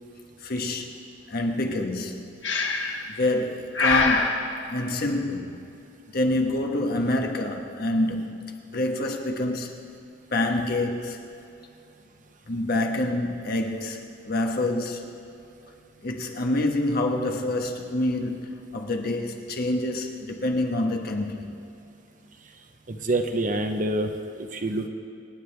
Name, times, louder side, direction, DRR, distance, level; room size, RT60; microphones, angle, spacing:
voice 1, 0.4-0.9 1.3-2.5 3.1-5.6 6.1-9.7 10.3-11.3 12.5-15.2 16.0-21.5, left 1 dB, 55° left, 1.3 m, -27 dB
Breathing, 2.4-3.1 3.7-4.3, left 4 dB, 75° left, 1.5 m, -23 dB
voice 2, 22.9-24.9, right 1 dB, 45° right, 0.8 m, -27 dB
26.0 x 9.4 x 3.4 m
head